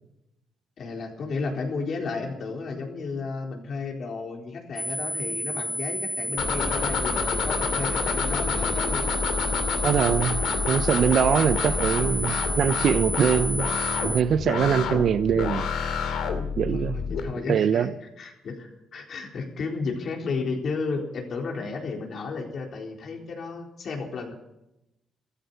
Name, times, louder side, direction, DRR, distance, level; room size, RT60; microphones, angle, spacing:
voice 1, 0.8-9.1 16.7-17.9 18.2-24.3, left 4 dB, 55° left, 4.1 m, -33 dB
sound 1, 4.8-14.2, equal, 5° left, 0.6 m, -31 dB
Squeak, 6.3-12.7, right 1 dB, 20° right, 2.7 m, -44 dB
sound 2, 6.4-17.2, left 6 dB, 80° left, 2.6 m, -28 dB
voice 2, 9.8-13.7 14.0-15.7 16.6-17.0 17.5-17.9, right 8 dB, 60° right, 0.7 m, -23 dB
14.0 x 14.0 x 6.9 m
cardioid pair, 90°, 0 cm